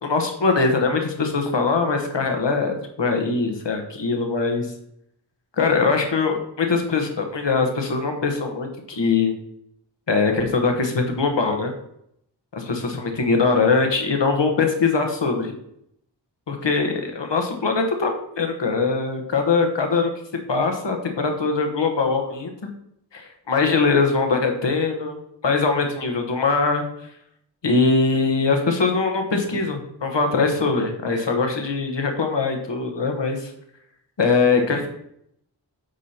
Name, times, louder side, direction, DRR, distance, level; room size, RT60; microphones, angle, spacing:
voice 1, 0.0-4.7 5.6-9.3 10.1-11.7 12.5-15.6 16.5-20.1 20.5-22.7 23.1-23.2 23.5-25.2 25.4-26.8 27.6-33.5 34.2-34.9, left 4 dB, 90° left, 4 dB, 1.1 m, -22 dB
8.2 x 2.8 x 5.6 m, 0.74 s
wide cardioid pair, 50°, 42 cm